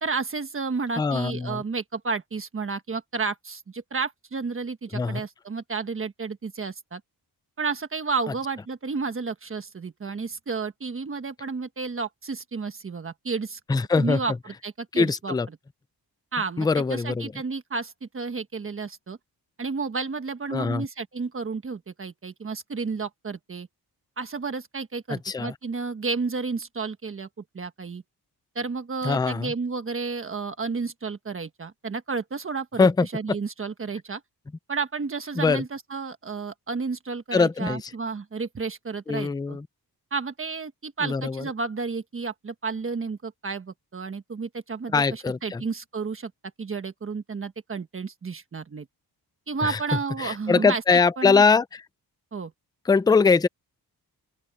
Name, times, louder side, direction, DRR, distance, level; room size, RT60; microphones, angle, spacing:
voice 1, 0.0-7.0 7.6-13.6 14.0-15.3 16.3-19.2 19.6-23.7 24.2-28.0 28.5-32.9 33.1-34.2 34.7-39.6 40.1-46.3 46.6-48.9 49.5-50.8 51.2-51.4 52.3-52.5, right 4 dB, 35° right, 1.3 m, -31 dB
voice 2, 1.0-1.6 4.9-5.2 13.7-14.2 14.9-15.5 16.6-17.3 20.5-20.9 25.1-25.5 29.0-29.5 32.8-33.1 35.4-35.6 37.3-37.9 39.1-39.7 41.0-41.4 44.9-45.6 49.6-49.8 50.2-51.8 52.9-53.5, left 4 dB, 10° left, 0.4 m, -22 dB
open air
wide cardioid pair, 170°, 39 cm